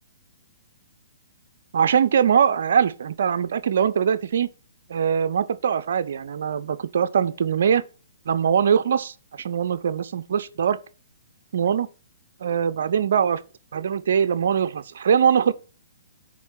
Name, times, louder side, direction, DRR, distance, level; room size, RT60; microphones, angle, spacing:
voice 1, 1.7-4.5 4.9-7.8 8.3-10.8 11.5-11.9 12.4-13.4 13.7-15.5, right 7 dB, 55° right, 0.4 m, -22 dB
7.1 x 4.2 x 6.2 m
figure-of-eight pair, 120°, 0 cm